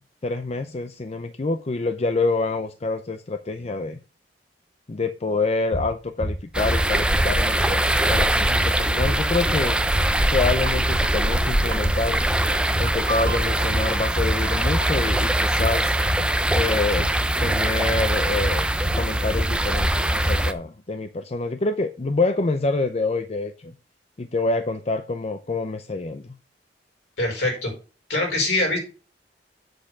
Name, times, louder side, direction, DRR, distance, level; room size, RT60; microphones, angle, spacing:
voice 1, 0.2-4.0 4.9-9.8 10.3-12.2 12.8-16.0 16.5-17.1 17.4-18.7 18.9-23.7 24.2-26.3, left 3 dB, 35° left, 0.5 m, -26 dB
sound 1, 5.7-20.5, equal, 60° left, 4.0 m, -29 dB
sound 2, 6.5-20.5, right 1 dB, 5° right, 0.6 m, -22 dB
sound 3, 9.0-10.0 10.6-11.4 11.7-17.4, right 2 dB, 80° right, 1.1 m, -35 dB
voice 2, 27.2-27.7 28.1-28.8, left 2 dB, 75° left, 5.3 m, -23 dB
7.8 x 6.6 x 6.0 m
head